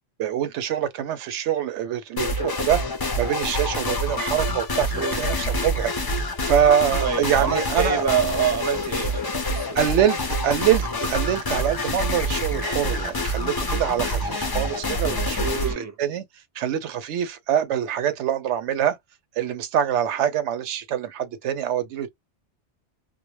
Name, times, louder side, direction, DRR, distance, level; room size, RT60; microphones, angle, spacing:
voice 1, 0.2-5.9 6.4-8.0 9.7-16.2 16.6-19.0 19.4-22.1, right 10 dB, 90° right, 0.9 m, -25 dB
sound 1, 2.2-15.7, left 1 dB, 40° left, 0.3 m, -26 dB
voice 2, 4.9-5.3 7.0-9.8 15.4-15.9, right 7 dB, 20° right, 0.5 m, -26 dB
2.2 x 2.1 x 2.9 m
omnidirectional pair, 1.2 m